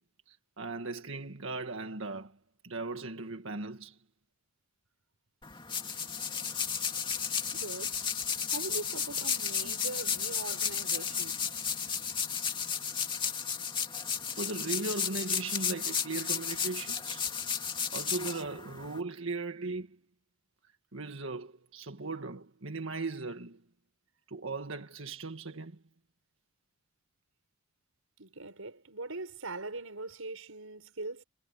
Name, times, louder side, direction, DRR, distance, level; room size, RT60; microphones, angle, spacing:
voice 1, 0.3-2.4 2.6-4.0 9.6-9.7 14.4-17.3 17.9-20.0 20.9-23.6 24.3-25.8, right 3 dB, 70° right, 1.8 m, -38 dB
sound 1, 5.4-19.0, left 7 dB, 25° left, 2.5 m, -33 dB
voice 2, 7.5-8.0 8.5-11.4 28.2-31.2, right 2 dB, 90° right, 5.5 m, -41 dB
head